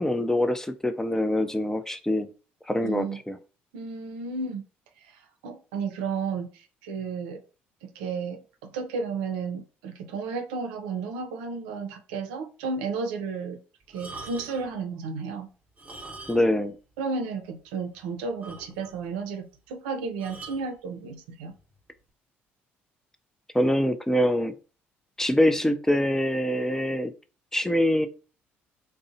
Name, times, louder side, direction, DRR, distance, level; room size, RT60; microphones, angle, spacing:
voice 1, 0.0-2.3 2.7-3.4 16.3-16.8 23.5-24.5 25.2-27.1 27.5-28.1, left 1 dB, 10° left, 8 dB, 0.4 m, -24 dB
voice 2, 2.8-3.2 3.7-4.6 5.1-7.4 7.8-13.6 13.9-15.5 17.0-21.5, right 4 dB, 90° right, 5 dB, 0.4 m, -33 dB
sound 1, 13.9-14.7 15.7-16.7 16.9-17.1 17.6-17.7 17.9-18.0 18.4-19.1 20.2-20.7 21.5-21.8, right 3 dB, 30° right, 0.8 m, -43 dB
2.6 x 2.0 x 2.6 m, 0.35 s
supercardioid pair, 65°, 5 cm